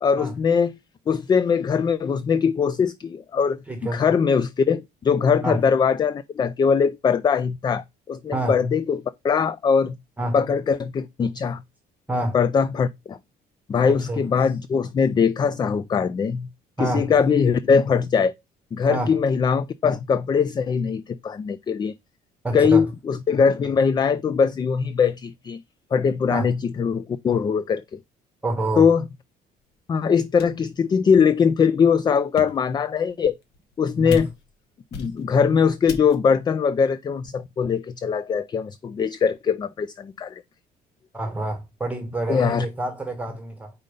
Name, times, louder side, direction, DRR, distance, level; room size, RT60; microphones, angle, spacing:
voice 1, 0.0-0.8 1.1-3.6 3.9-9.9 10.3-11.6 12.3-13.2 13.7-16.5 16.8-18.3 18.7-21.9 22.5-25.6 25.9-27.8 28.8-29.0 29.9-33.3 33.8-34.3 34.9-40.4 42.3-42.7, left 6 dB, 25° left, 0.3 m, -21 dB
voice 2, 3.7-4.1 5.4-5.6 8.3-8.6 10.2-10.4 12.1-12.4 13.8-14.2 16.8-17.1 18.9-19.1 22.4-22.9 26.3-26.5 28.4-28.9 34.0-34.3 41.1-43.7, right 1 dB, 10° right, 1.1 m, -27 dB
sound 1, 29.7-29.8 30.4-30.7 31.4-31.5 32.2-32.8 33.4-33.8 34.1-34.6 34.9-35.4 35.9-36.4, left 5 dB, 80° left, 1.2 m, -39 dB
5.3 x 4.1 x 5.1 m
cardioid pair, 110°, 17 cm